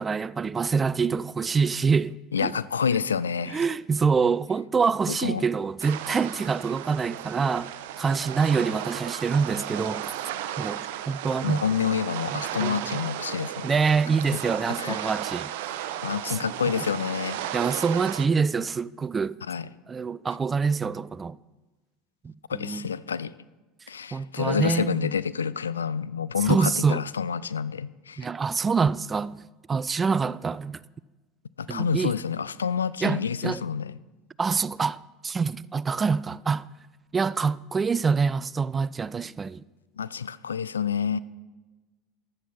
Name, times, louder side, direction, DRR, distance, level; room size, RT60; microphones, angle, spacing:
voice 1, 0.0-2.5 3.5-10.2 10.6-11.6 12.3-13.0 13.6-15.8 16.3-16.4 16.7-16.8 17.5-19.4 19.9-21.4 22.2-22.9 24.1-25.1 26.4-27.0 28.2-30.8 31.7-32.1 33.0-33.6 34.4-36.7 37.1-39.6, right 5 dB, 25° right, 0.4 m, -26 dB
voice 2, 2.3-3.6 5.1-5.4 11.4-13.7 14.3-14.4 14.8-15.1 16.0-17.5 19.5-19.7 22.5-23.3 23.9-28.3 31.6-34.0 40.0-41.2, left 7 dB, 80° left, 0.4 m, -28 dB
sound 1, 5.8-18.3, right 12 dB, 65° right, 0.7 m, -35 dB
15.0 x 11.5 x 4.2 m
figure-of-eight pair, 70°, 0 cm